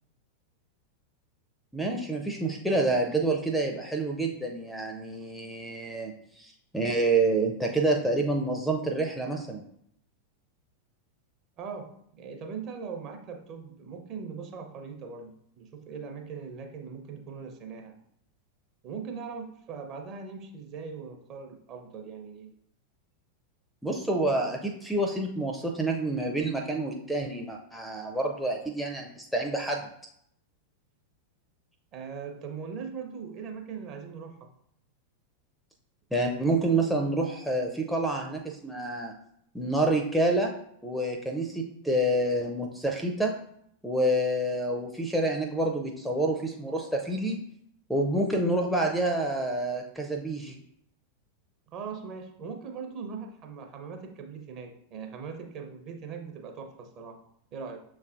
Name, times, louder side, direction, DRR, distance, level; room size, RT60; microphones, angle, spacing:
voice 1, 1.7-9.6 23.8-29.9 36.1-39.1 39.5-40.5 40.8-43.3 43.8-47.4 47.9-50.6, right 2 dB, ahead, 3 dB, 0.5 m, -28 dB
voice 2, 2.4-2.8 11.6-18.0 18.8-22.5 31.9-34.5 51.7-57.2 57.5-57.8, right 5 dB, 35° right, 4 dB, 0.7 m, -40 dB
6.6 x 3.2 x 2.5 m, 0.71 s
figure-of-eight pair, 90°, 0 cm